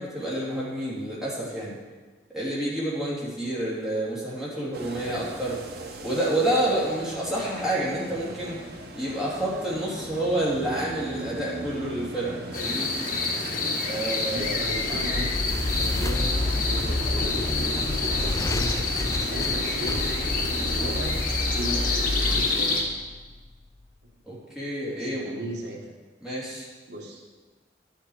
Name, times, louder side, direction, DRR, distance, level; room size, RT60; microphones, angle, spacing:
voice 1, 0.0-1.7 2.3-5.6 6.0-8.6 8.9-12.9 13.8-14.7 24.3-25.3 26.2-26.7, right 1 dB, 5° right, -8 dB, 3.0 m, -29 dB
sound 1, 4.7-22.4, right 2 dB, 60° right, 1.1 m, -40 dB
sound 2, 12.5-22.8, left 3 dB, 55° left, 1.5 m, -28 dB
voice 2, 14.3-15.3 15.8-17.5 18.0-18.7 19.1-21.1 21.5-23.0 24.9-25.9 26.9-27.2, right 1 dB, 80° right, 0 dB, 1.4 m, -36 dB
sound 3, 14.4-23.5, left 2 dB, 20° left, 0.3 m, -30 dB
11.5 x 7.5 x 4.9 m, 1.3 s
head